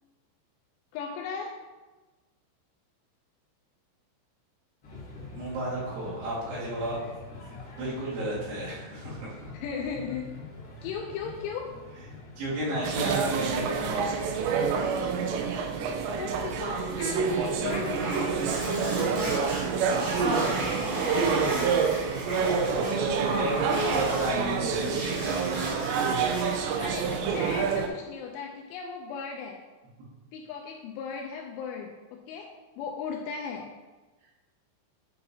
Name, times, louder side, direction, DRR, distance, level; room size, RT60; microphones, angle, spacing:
voice 1, 0.9-1.6 9.5-10.3 10.8-11.8 16.2-18.4 26.8-29.6 30.3-33.8, left 6 dB, 85° left, 1 dB, 2.8 m, -37 dB
sound 1, 4.8-14.6, left 3 dB, 65° left, 1.1 m, -45 dB
voice 2, 5.3-7.2 7.8-9.3 12.4-14.3 23.4-25.8, right 1 dB, 70° right, -9 dB, 4.6 m, -32 dB
sound 2, 12.8-27.9, right 5 dB, 85° right, 2.5 m, -28 dB
sound 3, 17.6-24.4 24.7-26.6, right 1 dB, 50° right, 3.9 m, -33 dB
9.3 x 5.4 x 2.7 m, 1.2 s
omnidirectional pair, 5.8 m